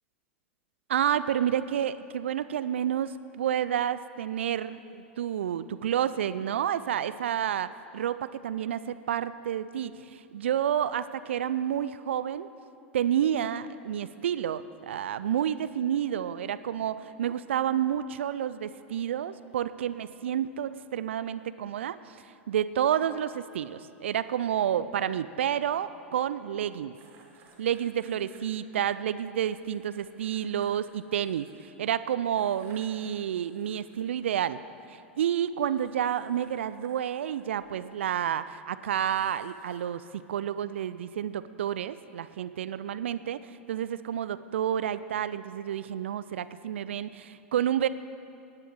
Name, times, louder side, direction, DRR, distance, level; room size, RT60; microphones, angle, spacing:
voice 1, 0.9-12.5 12.9-22.2 22.5-26.9 27.6-34.6 34.9-40.0 40.3-47.9, right 10 dB, 70° right, 14 dB, 0.4 m, -30 dB
sound 1, 26.9-28.4 29.5-31.7 32.3-34.0 35.6-38.0 38.9-40.0, right 5 dB, 35° right, 2.5 m, -59 dB
17.5 x 9.7 x 4.8 m, 2.6 s
figure-of-eight pair, 90°, 7 cm